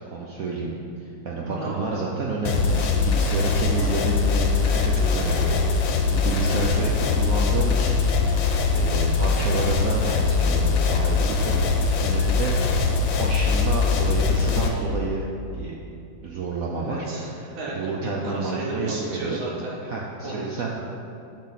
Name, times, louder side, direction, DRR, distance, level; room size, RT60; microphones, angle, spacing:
voice 1, 0.1-0.7 1.0-8.0 8.3-8.4 8.7-12.5 13.2-15.3 15.5-15.7 16.2-19.4 19.8-20.7, right 3 dB, 60° right, -3 dB, 1.0 m, -30 dB
voice 2, 1.5-2.0 3.8-4.0 16.8-17.3 17.5-19.8 20.2-20.7, right 2 dB, 80° right, -3 dB, 2.2 m, -33 dB
sound 1, 2.5-14.7, left 4 dB, 80° left, 1.6 m, -22 dB
Female singing, 3.6-9.9 10.6-10.7, equal, 30° right, 2.5 m, -42 dB
10.0 x 6.2 x 4.1 m, 2.7 s
omnidirectional pair, 2.1 m